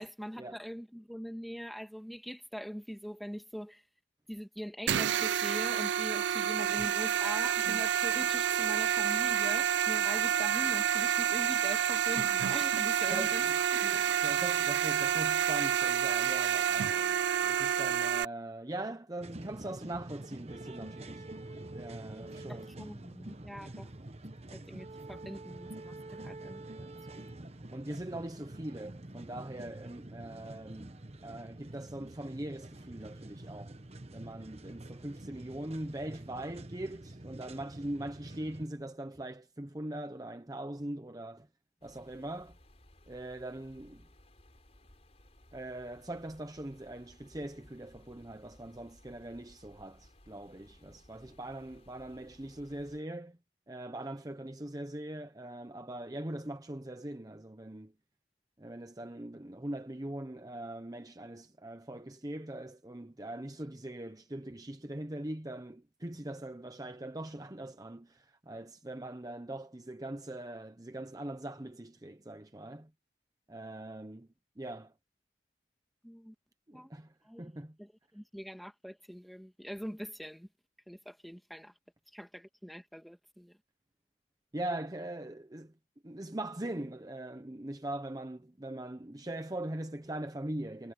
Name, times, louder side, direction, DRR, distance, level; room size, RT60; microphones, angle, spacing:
voice 1, 0.0-3.8 4.3-13.4 13.7-14.0 22.5-23.9 24.5-26.9 27.1-27.3 76.0-76.3 76.7-76.9 77.2-77.4 77.8-80.5 80.9-81.7 82.1-83.6, equal, ahead, 1.9 m, -43 dB
sound 1, 4.9-18.3, right 9 dB, 90° right, 0.4 m, -29 dB
voice 2, 13.1-13.6 13.9-21.3 21.5-22.7 27.7-33.8 34.1-41.5 41.8-42.6 43.1-44.0 45.5-53.4 53.7-57.9 58.6-72.9 73.5-74.3 74.6-74.9 76.7-77.8 84.5-85.7 86.0-90.9, right 1 dB, 20° right, 0.8 m, -41 dB
sound 2, 19.2-38.7, right 1 dB, 35° right, 1.1 m, -47 dB
sound 3, 41.8-53.0, left 1 dB, 35° left, 4.5 m, -60 dB
head